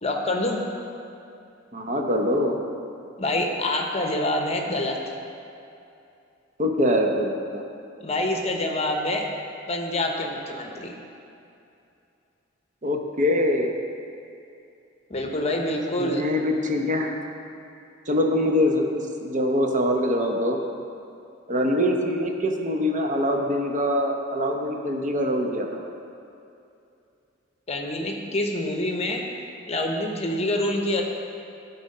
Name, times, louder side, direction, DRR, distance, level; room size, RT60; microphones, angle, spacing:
voice 1, 0.0-0.6 3.2-5.0 8.0-9.3 9.7-10.9 15.1-16.2 27.7-29.2 29.7-31.0, left 1 dB, 35° left, 2 dB, 0.9 m, -26 dB
voice 2, 1.7-2.6 6.6-7.6 12.8-13.7 16.0-17.1 18.1-20.6 21.5-25.8, left 1 dB, 40° right, 2 dB, 0.8 m, -24 dB
12.0 x 4.2 x 5.4 m, 2.7 s
head